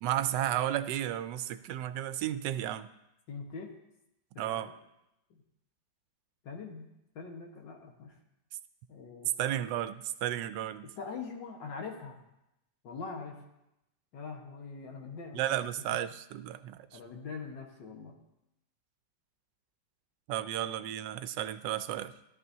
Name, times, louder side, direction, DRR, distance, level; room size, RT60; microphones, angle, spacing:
voice 1, 0.0-2.9 4.4-4.7 9.4-10.9 15.3-17.0 20.3-22.1, right 12 dB, 80° right, 12 dB, 1.2 m, -33 dB
voice 2, 3.3-3.7 4.3-4.7 6.4-8.1 8.9-9.3 11.0-12.2 12.8-13.4 14.1-15.5 15.9-16.0 16.9-18.2, left 5 dB, 80° left, 1 dB, 2.1 m, -43 dB
13.5 x 13.0 x 2.7 m, 0.87 s
omnidirectional pair, 1.9 m